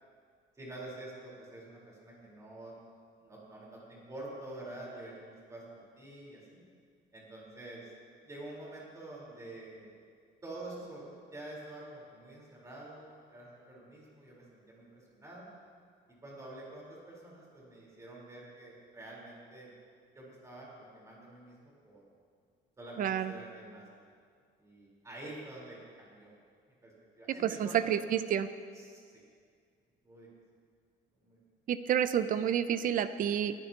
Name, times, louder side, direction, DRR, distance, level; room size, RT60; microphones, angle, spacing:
voice 1, 0.6-2.7 3.2-6.6 7.1-7.9 8.2-10.0 10.4-15.5 16.2-19.7 20.1-22.0 22.8-24.1 24.6-26.3 26.8-26.9 27.2-28.0 28.7-29.2 30.0-30.3 31.2-31.4, right 2 dB, 15° right, -5 dB, 4.1 m, -47 dB
voice 2, 23.0-23.3 27.4-28.5 31.7-33.5, right 9 dB, 45° right, 12 dB, 0.6 m, -29 dB
22.0 x 15.0 x 2.9 m, 2.1 s
cardioid pair, 165°, 19 cm